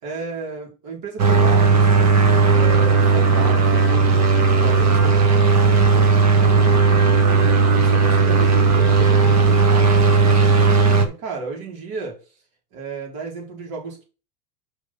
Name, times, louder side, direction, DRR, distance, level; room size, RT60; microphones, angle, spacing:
voice 1, 0.0-2.1 2.5-6.1 6.5-6.7 7.3-12.2 12.7-14.0, right 4 dB, 50° right, 0 dB, 4.6 m, -34 dB
sound 1, 1.2-11.1, right 4 dB, 35° right, 1.9 m, -16 dB
5.9 x 5.5 x 6.0 m, 0.33 s
supercardioid pair, 120°, 46 cm